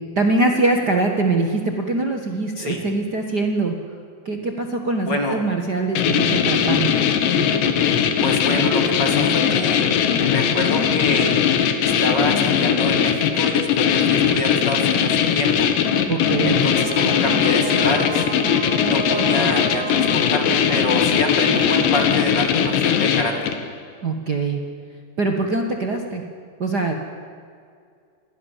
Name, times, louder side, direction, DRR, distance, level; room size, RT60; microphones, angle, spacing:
voice 1, 0.1-3.8 4.2-6.9 16.1-16.6 24.0-24.6 25.2-26.2 26.6-26.9, right 3 dB, 85° right, 3 dB, 0.9 m, -22 dB
voice 2, 5.0-5.4 8.2-9.9 10.3-11.3 11.8-15.7 16.4-18.3 18.8-23.5, left 2 dB, 30° left, 2 dB, 3.3 m, -26 dB
sound 1, 6.0-23.7, left 8 dB, 90° left, 3.9 m, -19 dB
sound 2, 15.1-22.9, right 3 dB, 50° right, 2.3 m, -34 dB
28.5 x 22.0 x 7.5 m, 2.3 s
omnidirectional pair, 4.9 m